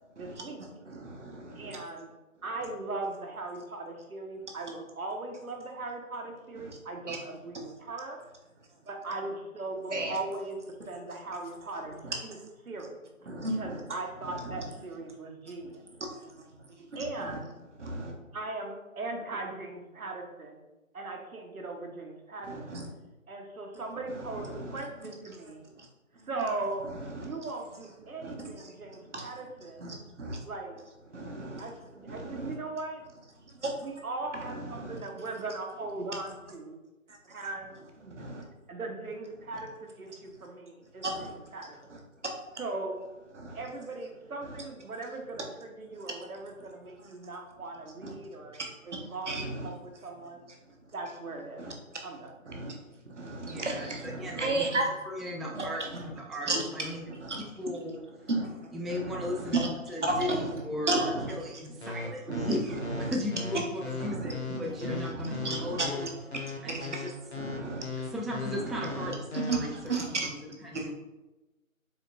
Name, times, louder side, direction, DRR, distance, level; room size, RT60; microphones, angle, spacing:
voice 1, 0.2-0.6 1.6-2.1 2.4-8.2 8.9-11.9 12.2-12.4 12.6-13.0 13.5-15.8 16.9-17.5 18.3-20.6 20.9-22.8 23.3-25.6 26.3-26.9 27.2-29.9 30.4-30.8 31.3-33.0 33.8-36.8 37.3-38.2 38.7-42.0 42.6-43.1 43.5-50.4 50.9-51.7 52.0-52.3, right 2 dB, 90° right, 3 dB, 0.9 m, -39 dB
voice 2, 0.9-1.8 7.1-7.2 9.9-10.2 12.0-12.1 13.3-13.8 14.4-14.6 17.8-18.1 22.5-22.9 24.6-24.8 27.2-27.3 28.2-28.3 29.1-29.2 29.8-30.4 31.1-31.6 32.1-32.6 33.6-33.7 34.5-35.0 38.2-38.4 41.0-41.3 43.3-43.6 48.0-48.1 48.9-49.0 49.3-49.7 51.6-51.7 52.5-52.7 53.2-54.8 55.5-56.0 56.5-56.9 57.2-57.4 58.3-58.6 58.9-59.7 60.0-60.5 60.9-61.3 62.3-62.5 62.9-63.1 64.0-66.1 66.6-67.0 67.4-67.8 68.6-70.3 70.7-70.8, right 2 dB, 55° right, 1 dB, 0.8 m, -33 dB
voice 3, 53.5-54.7 55.1-58.0 58.7-59.6 59.9-66.0 66.6-67.1 68.0-70.9, left 1 dB, ahead, -2 dB, 0.3 m, -36 dB
sound 1, 61.8-69.6, left 4 dB, 50° left, 0.7 m, -37 dB
4.2 x 2.9 x 2.7 m, 1.1 s
figure-of-eight pair, 175°, 42 cm